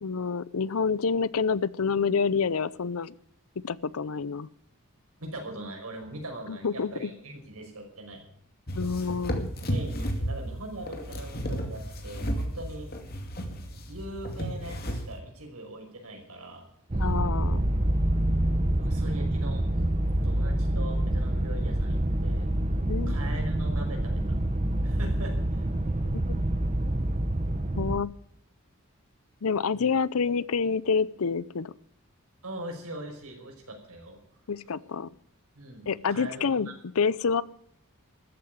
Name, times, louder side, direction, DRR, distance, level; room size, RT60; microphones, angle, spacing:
voice 1, 0.0-3.1 3.6-4.5 6.5-7.1 8.7-9.5 17.0-17.6 22.9-23.2 26.1-26.3 27.8-28.1 29.4-31.7 34.5-35.1 35.9-36.7 37.0-37.4, left 5 dB, 80° left, 20 dB, 0.6 m, -28 dB
voice 2, 5.2-8.2 9.6-13.1 13.6-16.7 18.8-19.6 20.2-22.5 23.1-24.2 24.8-25.7 29.7-29.9 32.4-34.2 35.6-36.7, right 1 dB, 90° right, 2 dB, 5.4 m, -41 dB
sound 1, 8.7-15.2, equal, 45° left, 2.4 m, -33 dB
sound 2, 16.9-28.0, right 1 dB, 30° right, 0.8 m, -27 dB
14.0 x 8.8 x 9.4 m, 0.68 s
head